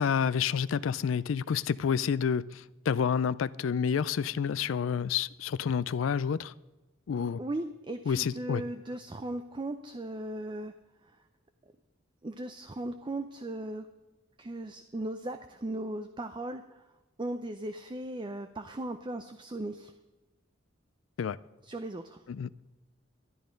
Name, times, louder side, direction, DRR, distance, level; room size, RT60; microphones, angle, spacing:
voice 1, 0.0-6.5 7.1-7.4 8.1-8.6 21.2-21.4 22.3-22.5, left 7 dB, 80° left, 0.4 m, -29 dB
voice 2, 7.4-10.7 11.0-11.1 12.2-13.9 14.4-16.8 17.2-19.9 21.6-22.2, right 1 dB, 25° right, 0.5 m, -37 dB
12.5 x 11.0 x 5.2 m
head